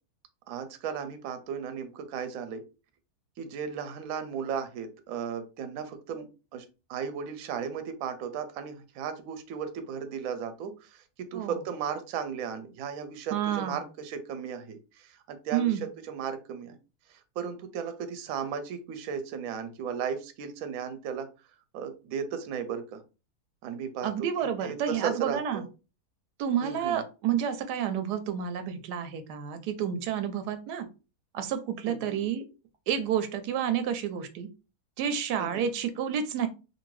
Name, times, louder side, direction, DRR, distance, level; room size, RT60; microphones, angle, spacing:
voice 1, 0.5-2.6 3.4-6.3 6.5-11.0 11.3-16.8 17.1-21.3 21.7-23.0 23.6-24.1 24.4-25.7 26.6-27.0 31.9-32.2 35.4-35.7, right 7 dB, 70° right, 8 dB, 0.9 m, -35 dB
voice 2, 13.3-13.8 15.5-15.9 24.0-25.6 26.4-30.9 31.3-32.4 32.9-34.5 35.0-36.5, right 8 dB, 85° right, 9 dB, 1.1 m, -30 dB
2.6 x 2.6 x 3.1 m, 0.31 s
omnidirectional pair, 1.7 m